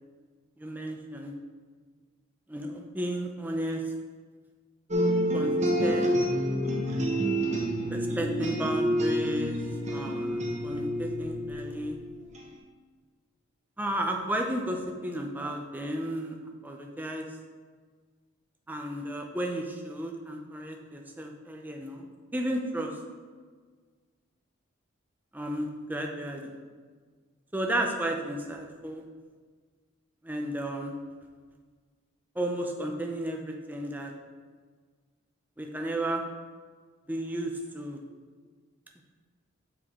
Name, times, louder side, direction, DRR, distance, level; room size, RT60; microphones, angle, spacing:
voice 1, 0.6-1.3 2.5-3.8 5.3-6.2 7.9-9.6 9.9-12.0 13.8-16.4 16.6-17.3 18.7-22.1 22.3-22.9 25.3-26.6 27.5-29.0 30.2-31.0 32.4-34.1 35.6-36.2 37.1-38.0, right 1 dB, 10° right, 1 dB, 0.6 m, -33 dB
sound 1, 4.9-12.5, equal, 35° right, 0.8 m, -28 dB
7.1 x 4.7 x 3.6 m, 1.5 s
head